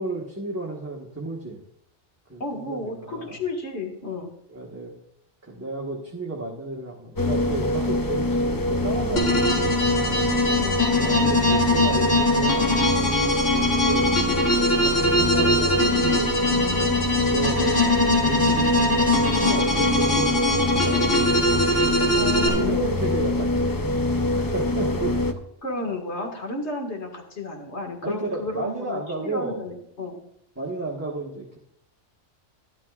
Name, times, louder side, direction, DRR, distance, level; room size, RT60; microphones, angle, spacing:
voice 1, 0.0-1.6 2.3-3.4 4.5-4.9 5.4-10.6 10.9-13.0 13.8-14.0 14.8-16.6 17.3-21.5 22.4-23.9 24.3-25.2 28.0-29.6 30.6-31.6, right 2 dB, 10° right, -3 dB, 1.2 m, -33 dB
voice 2, 2.4-4.3 10.6-10.8 13.5-13.7 22.1-22.9 25.6-30.2, left 2 dB, 60° left, 2 dB, 2.2 m, -32 dB
sound 1, 7.2-25.3, left 1 dB, 30° left, 0.4 m, -24 dB
sound 2, 9.2-22.5, left 1 dB, 80° left, 2.4 m, -23 dB
12.5 x 12.0 x 2.4 m, 0.74 s
omnidirectional pair, 1.3 m